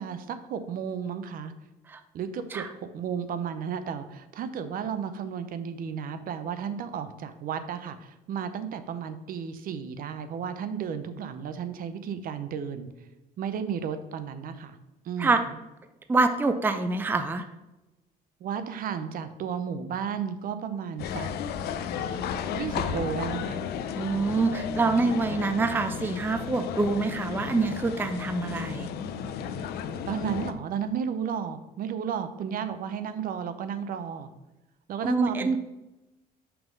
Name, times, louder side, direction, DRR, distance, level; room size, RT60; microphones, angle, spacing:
voice 1, 0.0-1.5 2.1-12.9 13.4-14.8 15.0-15.4 18.4-21.3 22.5-23.6 25.3-25.6 30.1-34.3 34.9-35.6, right 7 dB, 55° right, 10 dB, 0.6 m, -33 dB
voice 2, 16.1-17.4 24.0-28.9 35.0-35.6, right 3 dB, 10° right, 8 dB, 0.4 m, -25 dB
sound 1, 21.0-30.5, left 7 dB, 75° left, 0.5 m, -33 dB
5.7 x 3.6 x 5.3 m, 1.0 s
cardioid pair, 110°, 17 cm